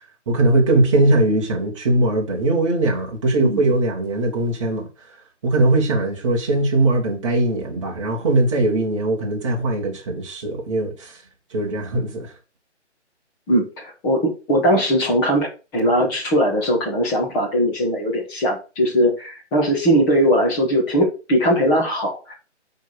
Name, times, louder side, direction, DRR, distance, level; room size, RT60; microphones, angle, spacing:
voice 1, 0.3-4.9 5.4-11.2 11.5-12.3, right 2 dB, 25° right, 2.0 m, -20 dB
voice 2, 13.5-15.5 15.7-22.3, equal, 10° left, 1.4 m, -20 dB
6.3 x 4.8 x 5.9 m
hypercardioid pair, 165°, 35 cm